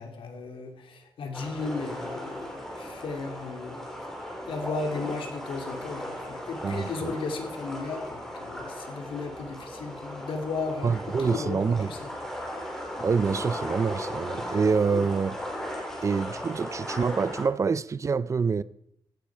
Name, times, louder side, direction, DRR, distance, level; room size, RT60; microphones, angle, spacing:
voice 1, 0.0-3.9 4.5-11.6 11.9-12.1 14.9-15.1, left 4 dB, 80° left, 2.5 m, -35 dB
sound 1, 1.3-17.4, equal, 5° left, 4.2 m, -37 dB
voice 2, 6.6-7.1 10.8-11.9 13.0-15.4 16.0-18.6, right 5 dB, 35° right, 0.4 m, -26 dB
16.0 x 12.0 x 4.6 m
wide cardioid pair, 125°, 9 cm